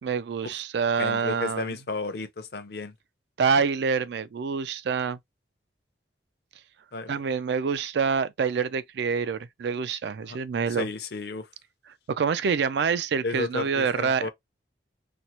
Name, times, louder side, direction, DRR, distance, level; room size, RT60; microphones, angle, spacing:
voice 1, 0.0-1.7 3.4-5.2 7.1-10.9 12.1-14.3, right 5 dB, 70° right, 0.4 m, -26 dB
voice 2, 1.0-2.9 6.9-7.2 10.2-10.4 10.8-11.5 13.2-14.3, left 3 dB, 65° left, 0.6 m, -33 dB
4.3 x 2.0 x 2.8 m
head